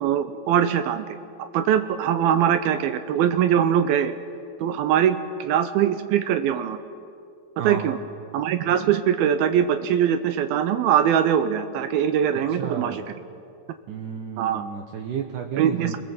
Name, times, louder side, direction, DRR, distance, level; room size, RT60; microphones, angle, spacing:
voice 1, 0.0-1.0 1.5-4.2 4.6-6.8 7.6-8.0 8.3-13.0 14.4-14.6 15.6-16.0, right 9 dB, 80° right, 9 dB, 2.7 m, -22 dB
voice 2, 7.6-8.0 12.6-13.1 13.9-16.0, right 7 dB, 65° right, 2 dB, 2.6 m, -32 dB
29.5 x 22.5 x 7.9 m, 2.4 s
omnidirectional pair, 4.2 m